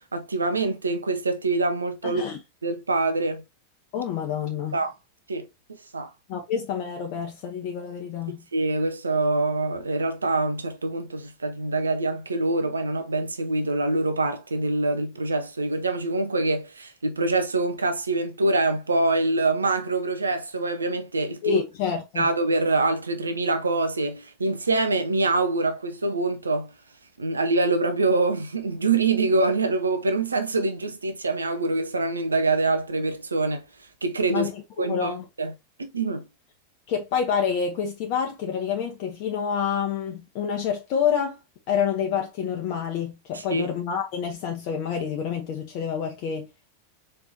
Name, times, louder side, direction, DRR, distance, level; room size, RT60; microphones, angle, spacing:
voice 1, 0.1-2.2 2.6-3.4 4.7-4.9 5.3-5.5 5.9-6.1 8.5-21.6 22.2-26.7 27.2-33.6 34.0-34.5 34.8-35.1 35.4-35.5 35.8-36.2 43.3-43.7, right 3 dB, 75° right, 0.6 m, -25 dB
voice 2, 2.0-2.4 3.9-4.8 6.3-8.5 21.4-22.3 34.3-35.3 36.9-41.4 41.7-46.5, left 7 dB, 45° left, 0.8 m, -28 dB
4.3 x 3.3 x 2.6 m
figure-of-eight pair, 90°, 0 cm